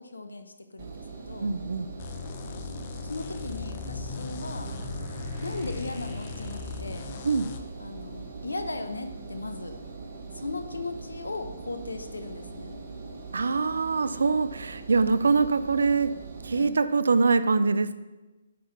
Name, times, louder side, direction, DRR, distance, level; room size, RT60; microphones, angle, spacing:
voice 1, 0.0-1.5 3.0-4.7 5.4-7.2 7.8-9.8 10.3-12.8 16.5-16.8, left 2 dB, 75° left, 7 dB, 1.0 m, -37 dB
Engine, 0.8-16.7, right 4 dB, 45° right, 1.5 m, -42 dB
voice 2, 1.4-1.9 7.2-7.5 13.3-16.1 16.4-17.9, right 4 dB, 65° right, 13 dB, 0.5 m, -24 dB
sound 1, 2.0-7.6, left 7 dB, 35° left, 0.8 m, -40 dB
sound 2, 3.0-8.0, left 1 dB, 25° right, 2.9 m, -41 dB
8.4 x 5.7 x 5.9 m, 1.1 s
figure-of-eight pair, 135°, 0 cm